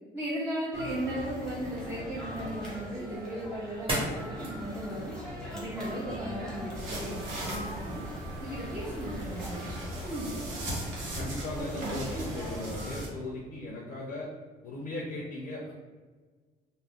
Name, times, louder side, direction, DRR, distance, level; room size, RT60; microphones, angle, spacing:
voice 1, 0.1-5.1 5.5-8.0 8.4-10.7, right 1 dB, 10° right, -8 dB, 0.6 m, -36 dB
sound 1, 0.7-13.0, equal, 5° left, 0.9 m, -41 dB
sound 2, 2.2-13.2, right 1 dB, 30° right, 1.0 m, -43 dB
sound 3, 6.7-13.1, right 1 dB, 85° right, 0.9 m, -38 dB
voice 2, 11.1-14.3 14.6-15.7, left 2 dB, 50° left, -2 dB, 0.5 m, -37 dB
2.3 x 2.1 x 3.5 m, 1.4 s
cardioid pair, 110°, 17 cm